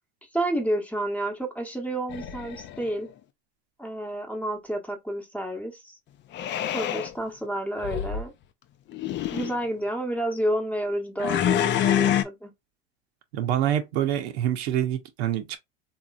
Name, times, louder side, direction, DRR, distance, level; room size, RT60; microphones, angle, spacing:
voice 1, 0.3-3.1 3.8-5.9 6.7-8.3 9.3-12.5, right 1 dB, 5° left, 1.0 m, -30 dB
sound 1, 2.1-2.9 6.3-7.1 7.8-8.3 8.9-9.6 11.2-12.2, left 11 dB, 35° left, 0.6 m, -26 dB
voice 2, 13.3-15.6, right 11 dB, 75° right, 0.9 m, -26 dB
3.7 x 2.9 x 2.4 m
hypercardioid pair, 100°, 33 cm